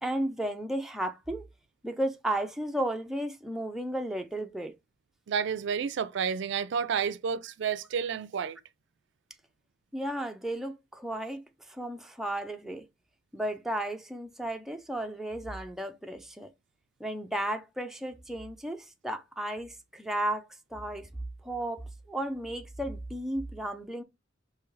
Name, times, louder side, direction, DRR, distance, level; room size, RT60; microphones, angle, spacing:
voice 1, 0.0-1.4 1.8-4.7 9.9-12.8 13.3-16.5 17.0-21.1 21.4-24.0, right 1 dB, ahead, 0.4 m, -34 dB
voice 2, 5.3-8.6, right 6 dB, 65° right, 0.4 m, -30 dB
4.8 x 2.8 x 3.1 m
head